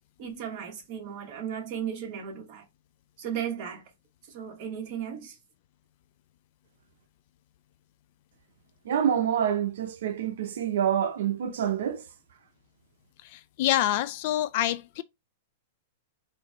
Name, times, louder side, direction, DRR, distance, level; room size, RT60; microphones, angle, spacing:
voice 1, 0.2-2.6 3.2-3.9 4.3-5.4, right 8 dB, 40° right, 1.4 m, -35 dB
voice 2, 8.8-12.1, right 9 dB, 75° right, 0.7 m, -27 dB
voice 3, 13.3-15.0, left 13 dB, 50° left, 0.3 m, -26 dB
4.3 x 2.8 x 2.9 m
hypercardioid pair, 150°, 0 cm